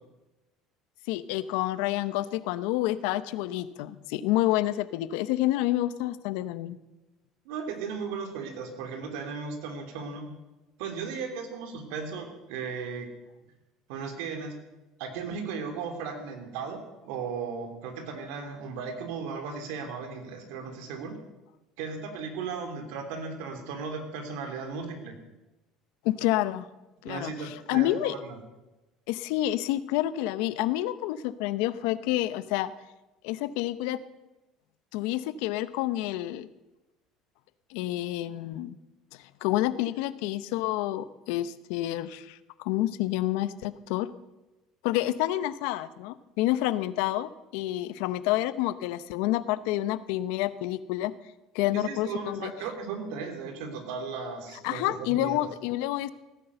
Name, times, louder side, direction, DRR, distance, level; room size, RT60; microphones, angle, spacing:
voice 1, 1.1-6.8 26.0-26.7 27.0-28.1 29.1-32.7 33.2-34.0 34.9-36.5 37.7-38.7 39.1-44.1 44.8-51.1 51.5-52.5 54.6-56.1, left 15 dB, 80° left, 15 dB, 0.7 m, -29 dB
voice 2, 7.4-10.3 10.8-13.1 13.9-14.5 15.0-21.1 21.8-25.1 27.0-28.4 51.7-55.4, right 5 dB, 80° right, 5 dB, 2.9 m, -36 dB
17.0 x 10.0 x 6.8 m, 1.1 s
supercardioid pair, 100°, 0 cm